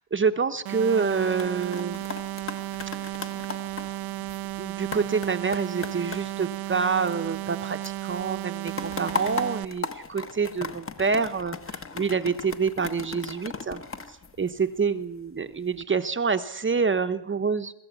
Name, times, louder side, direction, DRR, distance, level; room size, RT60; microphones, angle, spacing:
voice 1, 0.0-2.0 4.6-13.8 14.4-17.7, right 5 dB, 25° right, 9 dB, 1.0 m, -27 dB
sound 1, 0.6-9.6, right 16 dB, 75° right, 0.8 m, -34 dB
sound 2, 1.1-7.6 7.8-15.0 15.5-15.8, left 4 dB, 25° left, 1.4 m, -38 dB
24.0 x 13.5 x 8.3 m, 0.86 s
cardioid pair, 110°, 49 cm